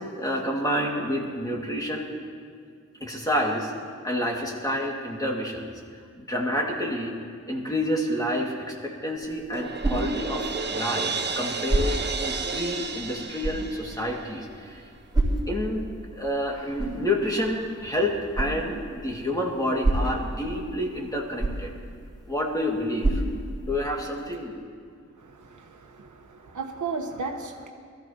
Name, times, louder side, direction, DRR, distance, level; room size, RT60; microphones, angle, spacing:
voice 1, 0.0-2.1 3.0-3.7 4.0-5.7 6.2-7.2 7.5-14.8 15.5-15.8 16.1-21.7 22.3-23.2 23.6-24.6, left 1 dB, 10° left, -1 dB, 1.9 m, -29 dB
sound 1, 9.2-24.1, right 2 dB, 15° right, 3.4 m, -31 dB
Crash cymbal, 9.5-14.5, right 4 dB, 35° right, 0.7 m, -32 dB
voice 2, 25.2-27.7, right 4 dB, 85° right, 3 dB, 1.1 m, -35 dB
21.0 x 14.0 x 2.9 m, 2.1 s
wide cardioid pair, 105°, 29 cm